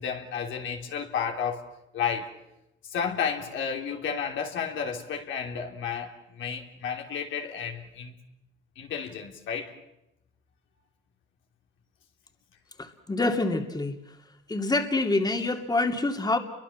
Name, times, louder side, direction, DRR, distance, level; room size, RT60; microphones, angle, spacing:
voice 1, 0.0-1.7 1.9-2.3 2.8-8.1 8.8-9.7, left 7 dB, 75° left, 3.3 m, -32 dB
voice 2, 12.8-13.9 14.5-16.4, left 2 dB, 20° left, 2.7 m, -26 dB
29.5 x 23.5 x 7.3 m
cardioid pair, 90°, 20 cm